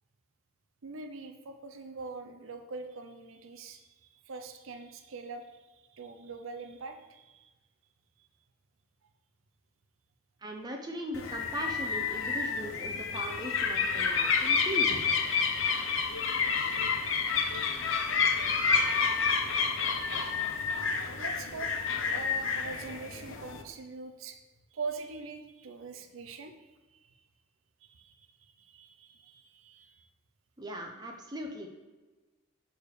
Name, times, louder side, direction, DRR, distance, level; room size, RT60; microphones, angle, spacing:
voice 1, 0.8-5.5 5.7-7.5 21.2-24.4 24.7-26.6 26.9-27.1 27.8-30.1, right 4 dB, 85° right, 6 dB, 0.6 m, -43 dB
voice 2, 10.4-15.1 30.6-31.7, equal, 20° right, 2 dB, 0.6 m, -39 dB
sound 1, 11.1-23.6, left 5 dB, 75° left, 0.7 m, -29 dB
6.7 x 4.7 x 4.7 m, 1.2 s
head